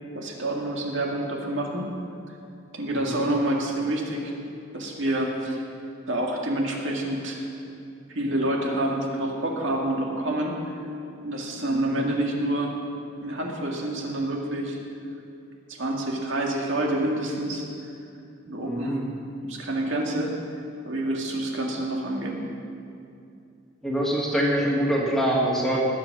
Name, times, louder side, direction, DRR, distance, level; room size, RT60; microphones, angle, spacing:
voice 1, 0.1-1.9 2.7-4.3 4.7-5.6 6.1-7.4 8.1-10.6 11.2-12.8 13.2-14.8 15.7-17.7 18.5-19.0 19.5-20.3 20.8-22.4, right 1 dB, 65° right, -1 dB, 2.1 m, -27 dB
voice 2, 2.9-3.2 11.7-12.0 18.6-19.0 23.8-25.8, equal, ahead, -4 dB, 2.0 m, -25 dB
19.0 x 8.1 x 6.1 m, 2.6 s
head